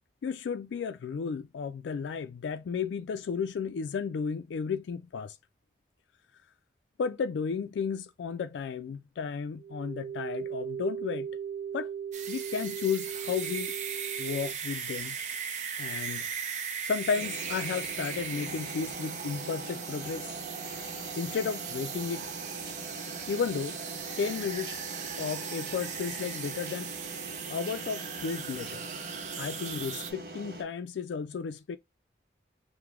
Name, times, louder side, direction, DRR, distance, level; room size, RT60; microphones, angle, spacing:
voice 1, 0.2-5.4 7.0-11.3 11.7-11.9 12.3-13.7 14.2-15.2 15.8-16.3 16.8-20.3 21.2-22.3 23.3-23.8 24.2-24.8 25.2-26.9 27.5-28.9 29.4-31.8, left 6 dB, 90° left, 0.3 m, -33 dB
sound 1, 9.6-14.5, right 8 dB, 85° right, 0.4 m, -38 dB
sound 2, 12.1-30.1, right 6 dB, 40° right, 0.6 m, -38 dB
sound 3, 17.2-30.6, right 2 dB, 60° right, 1.0 m, -43 dB
4.7 x 2.1 x 3.6 m
head